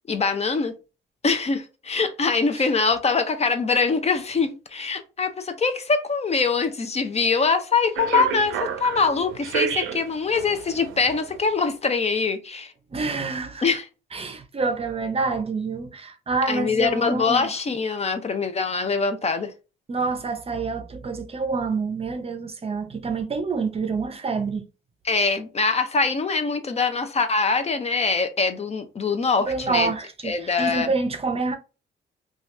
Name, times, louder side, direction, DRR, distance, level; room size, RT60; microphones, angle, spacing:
voice 1, 0.1-0.7 1.2-12.7 13.6-13.9 16.5-19.5 25.1-29.9 30.2-30.9, left 4 dB, 35° left, 0.6 m, -23 dB
sound 1, 7.9-11.4, right 8 dB, 90° right, 0.5 m, -30 dB
voice 2, 12.9-13.8 14.1-17.5 19.9-24.6 29.4-31.6, right 4 dB, 30° right, 0.6 m, -27 dB
2.8 x 2.3 x 3.2 m
cardioid pair, 90°, 20 cm